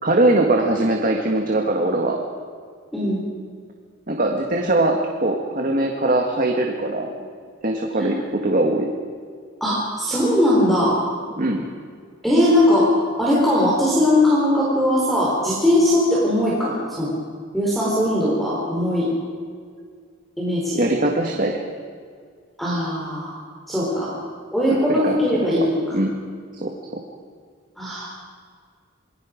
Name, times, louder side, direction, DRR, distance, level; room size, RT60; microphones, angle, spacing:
voice 1, 0.0-2.2 4.1-7.1 7.6-8.9 11.4-11.6 20.8-21.6 24.9-25.5 25.9-26.2 26.5-27.0, right 2 dB, 40° right, 2 dB, 1.8 m, -21 dB
voice 2, 2.9-3.3 8.0-8.1 9.6-11.0 12.2-12.9 13.2-17.1 17.5-19.1 20.4-20.8 22.6-23.4 23.7-24.1 24.5-26.0 27.8-28.2, left 1 dB, ahead, -6 dB, 4.2 m, -20 dB
27.5 x 21.0 x 5.2 m, 2.1 s
head